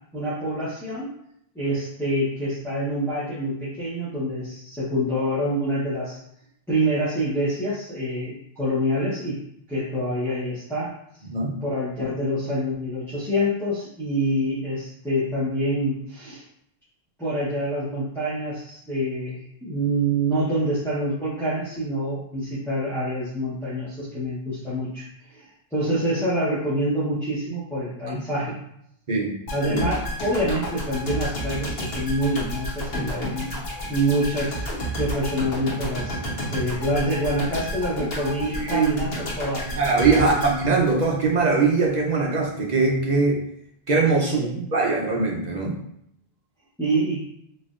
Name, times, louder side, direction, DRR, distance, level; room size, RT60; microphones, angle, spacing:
voice 1, 0.1-1.1 1.5-6.2 6.7-9.4 9.7-11.0 11.6-16.4 17.2-25.5 25.7-28.6 29.5-33.5 33.9-36.2 36.5-39.7 40.2-40.3 44.2-44.7 46.8-47.2, equal, 5° left, -11 dB, 0.8 m, -26 dB
voice 2, 29.1-29.4 38.6-39.0 39.6-43.4 43.9-44.5 44.7-45.8, right 4 dB, 50° right, -1 dB, 0.7 m, -21 dB
sound 1, 29.5-41.5 41.8-42.0, equal, 70° left, 1.1 m, -31 dB
4.0 x 2.6 x 2.4 m, 0.74 s
omnidirectional pair, 1.0 m